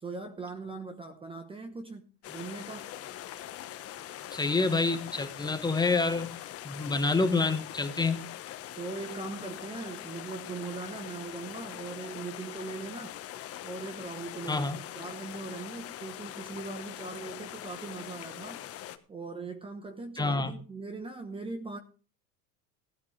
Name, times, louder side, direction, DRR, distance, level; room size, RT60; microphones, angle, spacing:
voice 1, 0.0-2.9 8.8-13.2 13.6-14.7 14.9-18.6 19.1-21.8, right 3 dB, 10° right, 1.0 m, -40 dB
sound 1, 2.2-19.0, left 12 dB, 30° left, 1.3 m, -42 dB
voice 2, 4.3-6.4 6.6-8.2 14.5-14.8 20.2-20.5, left 3 dB, 10° left, 1.2 m, -27 dB
16.0 x 12.5 x 3.3 m
supercardioid pair, 145°, 48 cm